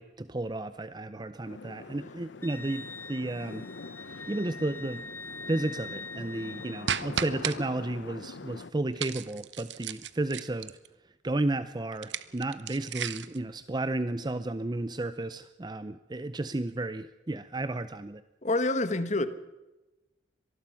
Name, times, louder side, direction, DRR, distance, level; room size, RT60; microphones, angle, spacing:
voice 1, 0.0-3.7 4.3-5.0 5.5-10.7 11.0-18.2, right 2 dB, 25° right, 12 dB, 0.6 m, -33 dB
sound 1, 1.4-8.7, left 4 dB, 80° left, 0.7 m, -44 dB
Wind instrument woodwind instrument, 2.4-6.9, left 2 dB, 15° left, 0.6 m, -43 dB
sound 2, 6.9-7.6 9.0-10.9 11.9-13.4, right 8 dB, 80° right, 1.0 m, -34 dB
voice 2, 18.4-19.3, left 2 dB, 40° left, 12 dB, 1.4 m, -27 dB
25.0 x 19.5 x 5.8 m, 1.0 s
head